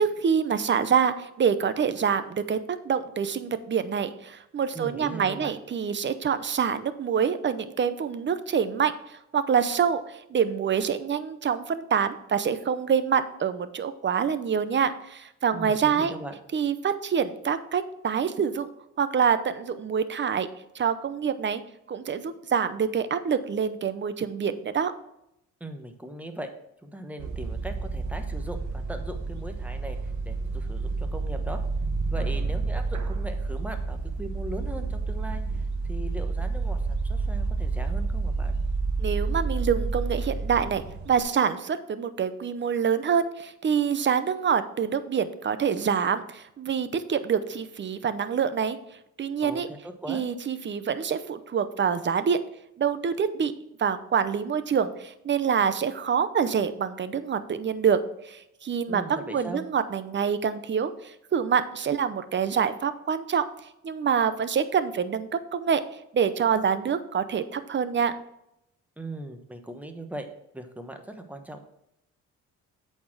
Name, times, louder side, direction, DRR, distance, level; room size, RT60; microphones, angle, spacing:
voice 1, 0.0-2.6 2.8-16.1 16.5-18.7 19.0-20.5 20.7-21.6 21.9-24.9 39.0-48.8 49.2-49.7 50.1-52.4 52.8-53.5 53.8-63.5 63.8-65.8 66.1-68.1, right 7 dB, 40° right, 12 dB, 0.7 m, -26 dB
voice 2, 4.7-5.5 15.5-16.3 25.6-26.5 26.8-31.6 32.1-38.6 49.4-50.2 58.9-59.6 69.0-70.3 70.5-71.6, right 1 dB, 5° right, 5 dB, 1.1 m, -39 dB
sound 1, 27.2-41.2, right 3 dB, 70° right, 1.1 m, -29 dB
8.3 x 4.4 x 5.9 m, 0.82 s
cardioid pair, 90°, 30 cm